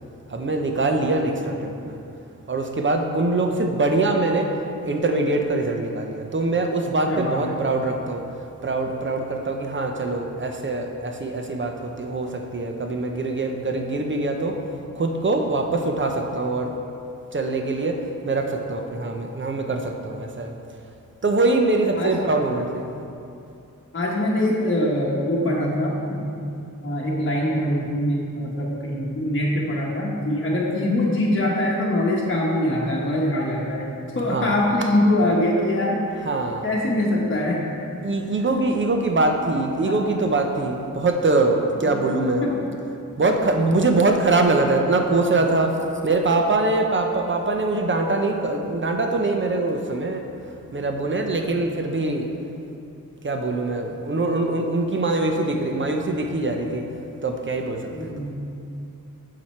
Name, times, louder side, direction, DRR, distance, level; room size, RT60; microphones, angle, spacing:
voice 1, 0.3-2.0 2.5-4.5 4.8-8.2 8.6-14.6 14.9-16.7 17.3-18.0 18.2-20.5 21.2-22.9 34.2-34.5 36.2-36.7 38.0-42.4 43.2-50.2 50.7-52.3 53.2-56.8 57.2-58.1, right 2 dB, 35° right, 3 dB, 0.6 m, -23 dB
voice 2, 7.1-7.4 22.0-22.1 23.9-26.4 26.8-33.9 34.1-36.0 36.6-37.6 39.8-40.2 41.8-42.0 42.4-42.5 57.9-58.4, left 1 dB, 40° left, -4 dB, 1.0 m, -23 dB
7.5 x 5.9 x 4.4 m, 2.7 s
wide cardioid pair, 120°, 33 cm